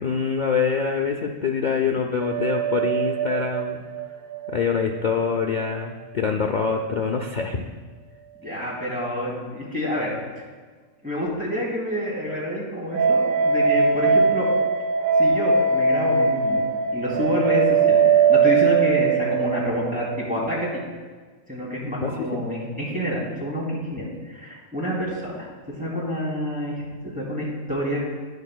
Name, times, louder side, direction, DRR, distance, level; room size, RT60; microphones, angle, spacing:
voice 1, 0.0-3.8 4.5-7.7 22.0-22.3, left 5 dB, 80° left, 3 dB, 0.4 m, -25 dB
sound 1, 2.2-5.4 5.6-5.7 12.9-20.9, right 5 dB, 80° right, 1.1 m, -21 dB
voice 2, 8.4-10.2 11.0-14.5 15.2-16.6 16.9-20.8 21.5-28.0, left 1 dB, 5° right, -6 dB, 2.7 m, -28 dB
12.0 x 9.8 x 2.2 m, 1.4 s
omnidirectional pair, 1.5 m